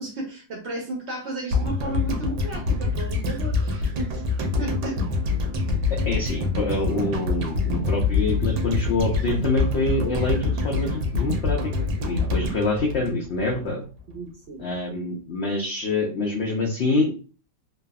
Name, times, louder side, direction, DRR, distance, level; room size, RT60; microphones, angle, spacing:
voice 1, 0.0-4.2 4.6-5.0 14.1-14.6, right 2 dB, 65° right, -1 dB, 0.7 m, -34 dB
sound 1, 1.5-13.7 14.0-14.1, left 3 dB, 85° right, 1.2 m, -25 dB
voice 2, 6.1-11.7 12.0-13.8 14.6-17.1, left 2 dB, 90° left, -1 dB, 0.5 m, -26 dB
3.2 x 2.0 x 2.2 m, 0.36 s
omnidirectional pair, 1.8 m